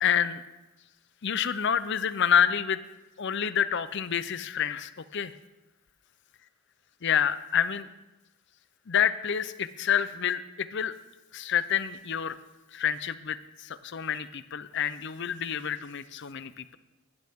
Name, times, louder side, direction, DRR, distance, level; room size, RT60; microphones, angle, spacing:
voice 1, 0.0-0.4 1.2-2.8 3.2-5.3 7.0-7.9 8.9-10.9 11.3-12.4 12.7-16.8, left 8 dB, 55° left, 14 dB, 0.6 m, -28 dB
19.0 x 12.0 x 3.6 m, 1.0 s
head